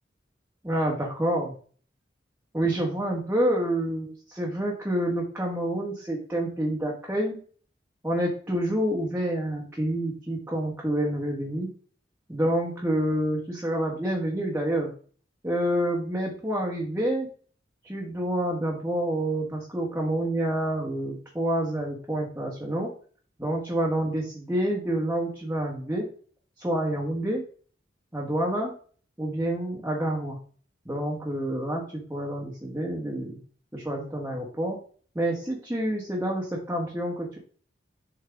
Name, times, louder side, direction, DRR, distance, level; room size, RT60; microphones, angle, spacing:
voice 1, 0.6-1.5 2.5-7.4 8.0-11.7 12.3-14.9 15.4-17.3 17.8-22.9 23.4-26.1 26.6-27.4 28.1-28.7 29.2-30.4 30.8-33.4 33.7-34.8 35.1-37.4, right 1 dB, 10° right, -3 dB, 1.5 m, -28 dB
7.4 x 4.6 x 3.5 m, 0.43 s
head